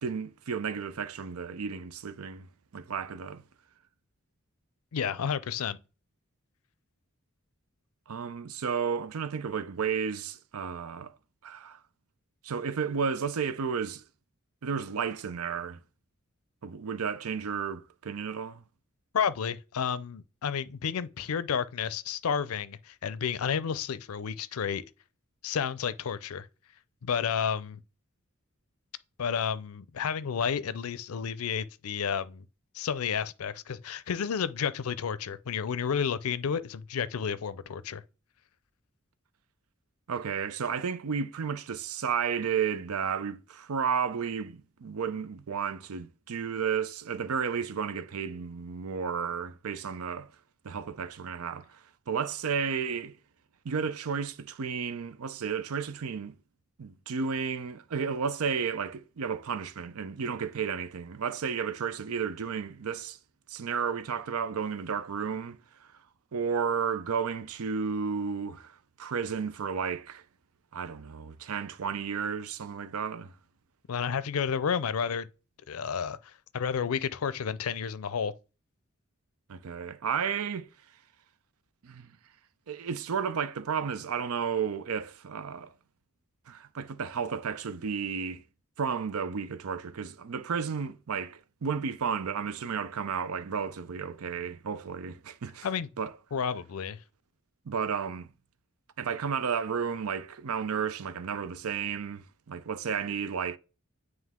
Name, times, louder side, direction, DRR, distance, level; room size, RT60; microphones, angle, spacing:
voice 1, 0.0-2.5 2.7-3.4 8.1-11.1 11.4-11.8 12.4-14.0 14.6-15.8 16.6-18.6 40.1-50.3 50.6-53.2 53.6-56.3 56.8-63.2 63.5-65.9 66.3-70.2 70.7-73.3 79.5-80.7 81.8-82.1 82.7-85.7 86.5-88.4 88.8-95.7 96.0-96.1 97.7-98.3 99.0-103.6, right 6 dB, 85° right, 0.5 m, -32 dB
voice 2, 4.9-5.8 19.1-24.8 25.4-26.5 27.0-27.8 29.2-32.4 32.7-38.0 73.9-75.3 75.7-78.3 95.6-95.9 96.3-97.0, left 7 dB, 80° left, 0.5 m, -31 dB
9.2 x 3.2 x 3.6 m
head